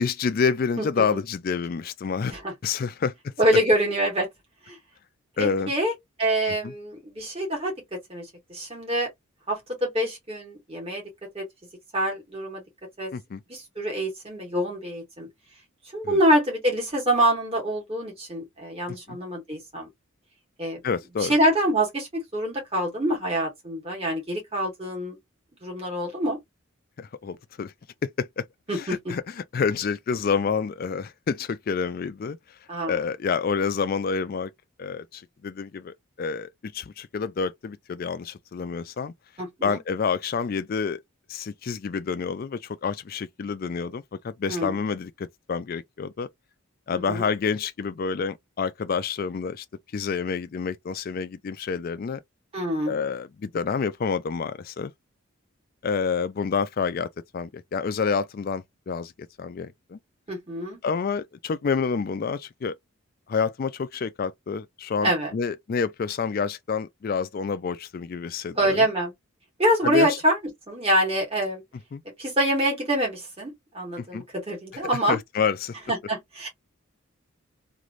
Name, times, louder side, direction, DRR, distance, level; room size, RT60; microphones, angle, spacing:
voice 1, 0.0-2.3 2.6-3.3 5.4-5.7 6.5-6.7 13.1-13.4 16.0-16.2 19.1-19.2 20.8-21.3 27.0-27.7 28.0-28.4 28.7-32.4 32.8-34.5 34.8-39.1 39.6-41.0 41.3-46.3 46.9-49.6 49.9-52.2 52.9-54.9 55.8-57.1 57.3-59.1 59.4-60.0 60.8-62.8 63.3-68.9 69.8-70.2 71.9-72.0 74.0-74.2 75.1-75.7, left 5 dB, 45° left, 0.3 m, -28 dB
voice 2, 0.8-1.2 2.3-2.5 3.4-4.3 4.7-4.8 5.4-7.7 8.1-9.1 9.5-11.0 11.3-11.4 11.9-12.6 13.0-13.1 13.5-15.3 15.9-19.9 20.6-20.8 21.2-25.2 25.6-26.4 28.7-29.1 32.7-33.0 39.4-39.8 44.5-44.8 46.9-47.3 52.5-53.0 60.3-60.8 65.0-65.3 68.5-69.1 69.6-70.4 70.7-71.6 72.2-75.2 75.9-76.5, equal, 25° right, 1.5 m, -25 dB
3.1 x 2.6 x 2.4 m
head